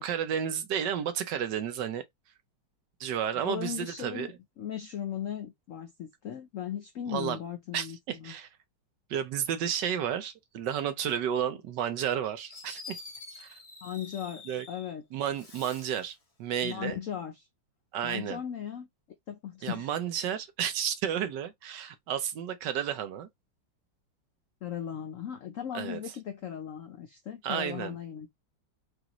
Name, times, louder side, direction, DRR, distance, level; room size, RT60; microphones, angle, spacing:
voice 1, 0.0-2.0 3.0-4.3 7.1-7.4 7.7-8.5 9.1-13.0 13.3-13.6 14.5-14.7 15.1-17.0 17.9-18.4 19.6-23.3 25.7-26.0 27.4-28.0, right 9 dB, 70° right, 1.3 m, -32 dB
voice 2, 3.4-8.3 13.8-15.0 16.6-17.5 18.0-18.9 19.3-19.9 24.6-28.3, left 9 dB, 75° left, 0.7 m, -37 dB
Fireworks, 12.5-14.9 15.3-16.1, left 3 dB, 35° left, 0.6 m, -47 dB
4.9 x 2.6 x 3.0 m
omnidirectional pair, 2.1 m